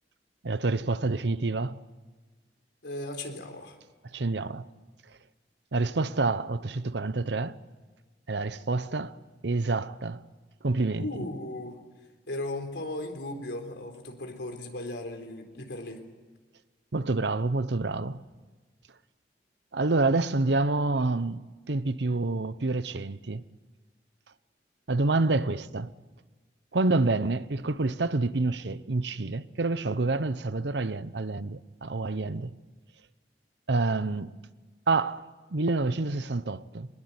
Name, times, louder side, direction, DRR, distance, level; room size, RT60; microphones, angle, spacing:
voice 1, 0.4-1.8 4.1-4.7 5.7-7.6 8.3-9.2 9.4-10.2 10.6-11.1 16.9-18.2 19.7-23.4 24.9-25.9 26.7-32.6 33.7-34.3 34.9-35.2 35.5-36.9, right 3 dB, 80° right, 0.8 m, -27 dB
voice 2, 2.8-3.8 11.0-11.8 12.3-16.0, left 1 dB, 80° left, 3.9 m, -36 dB
23.5 x 21.0 x 9.7 m
head